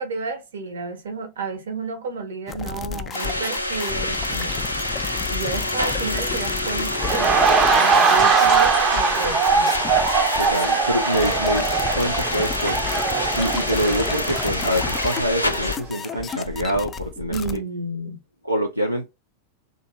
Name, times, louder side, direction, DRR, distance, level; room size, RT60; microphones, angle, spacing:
voice 1, 0.0-4.6 5.3-9.8 17.3-18.2, right 3 dB, 65° right, 0.9 m, -31 dB
sound 1, 2.5-17.6, left 7 dB, 25° left, 0.4 m, -33 dB
sound 2, 3.1-15.8, left 1 dB, 85° left, 0.4 m, -27 dB
sound 3, 7.0-15.8 16.1-16.3, right 5 dB, 25° right, 0.6 m, -21 dB
voice 2, 10.4-11.7 12.0-12.8 13.4-17.6 18.4-19.1, equal, 90° right, 0.4 m, -25 dB
2.7 x 2.5 x 3.7 m
figure-of-eight pair, 90°, 0 cm